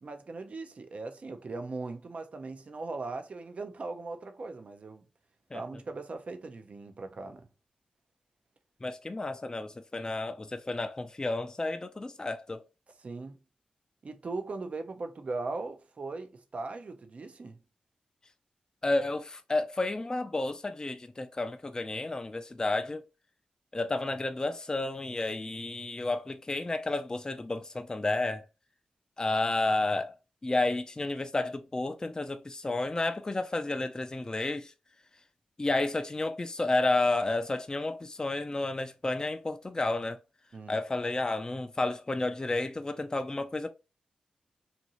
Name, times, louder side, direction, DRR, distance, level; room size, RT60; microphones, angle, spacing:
voice 1, 0.0-5.0 5.5-7.5 13.0-13.4 14.0-17.6 40.5-40.8, right 3 dB, 55° right, 0.5 m, -39 dB
voice 2, 8.8-12.6 18.8-23.0 23.7-28.5 29.2-30.2 30.4-34.7 35.6-40.2 40.7-43.7, left 2 dB, 25° left, 0.3 m, -31 dB
2.7 x 2.6 x 2.7 m
cardioid pair, 40°, 3 cm